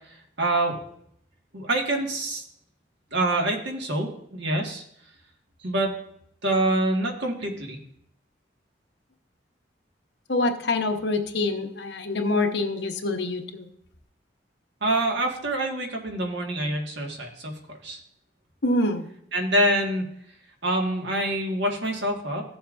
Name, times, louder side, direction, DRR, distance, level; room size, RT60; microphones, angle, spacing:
voice 1, 0.4-0.8 1.5-2.4 3.1-4.8 5.6-5.9 6.4-7.8 14.8-17.5 17.8-18.0 19.3-20.0 20.6-22.4, right 1 dB, 70° right, 1 dB, 1.6 m, -25 dB
voice 2, 10.3-13.7 18.6-19.1, left 2 dB, 70° left, 5 dB, 0.9 m, -25 dB
15.0 x 7.1 x 2.5 m, 0.69 s
head